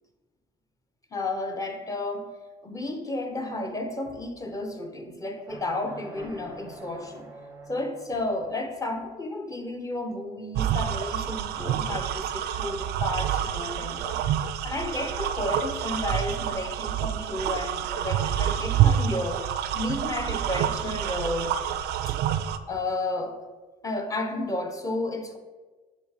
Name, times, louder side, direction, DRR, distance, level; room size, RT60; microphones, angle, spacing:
voice 1, 1.1-2.4 2.6-7.3 7.7-14.2 14.6-19.4 19.7-21.5 22.1-22.4 22.7-23.4 23.8-25.4, left 2 dB, 20° left, 5 dB, 0.8 m, -32 dB
sound 1, 5.4-8.3, right 2 dB, 15° right, 0.6 m, -45 dB
sound 2, 10.5-22.6, right 10 dB, 75° right, 0.4 m, -27 dB
6.9 x 3.2 x 4.8 m, 1.3 s
cardioid pair, 110°, 17 cm